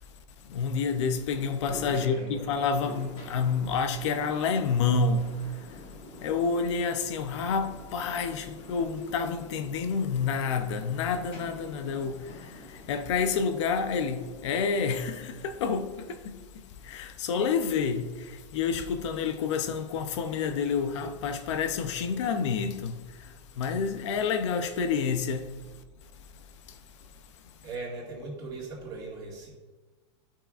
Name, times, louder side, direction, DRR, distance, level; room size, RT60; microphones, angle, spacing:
voice 1, 0.5-5.3 6.2-12.5 12.9-16.4 16.8-22.9 23.6-25.5, left 5 dB, 70° left, 0.6 m, -28 dB
sound 1, 1.3-15.7, left 1 dB, 35° left, 1.6 m, -48 dB
voice 2, 1.9-2.5 27.6-29.5, right 3 dB, 25° right, 2.2 m, -39 dB
11.5 x 5.8 x 2.5 m
supercardioid pair, 150°, 16 cm